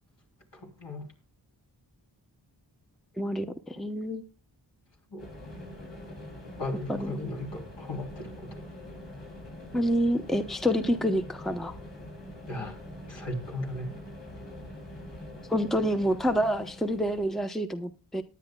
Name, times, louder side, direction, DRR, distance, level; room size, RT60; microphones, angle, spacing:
voice 1, 0.5-1.0 5.1-5.3 6.6-8.5 12.5-12.8 13.1-14.0, left 1 dB, 65° left, -1 dB, 3.5 m, -36 dB
voice 2, 3.2-4.2 6.9-7.1 9.7-11.7 15.5-18.2, equal, ahead, 9 dB, 0.8 m, -27 dB
sound 1, 5.2-17.5, left 1 dB, 85° left, 7.4 m, -44 dB
19.0 x 9.7 x 2.3 m, 0.31 s
cardioid pair, 50°, 45 cm